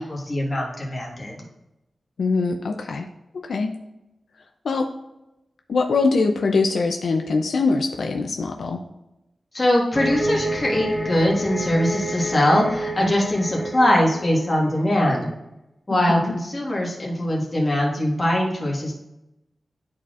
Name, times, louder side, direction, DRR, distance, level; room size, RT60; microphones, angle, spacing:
voice 1, 0.0-1.4 9.5-15.3 15.9-18.9, left 1 dB, 25° left, -3 dB, 1.6 m, -22 dB
voice 2, 2.2-3.1 3.3-3.7 4.6-4.9 5.7-8.8 15.9-16.3, left 4 dB, 70° left, 3 dB, 0.5 m, -23 dB
sound 1, 9.9-14.9, equal, 15° right, 1.2 m, -29 dB
11.5 x 4.2 x 2.5 m, 0.94 s
wide cardioid pair, 175°, 0 cm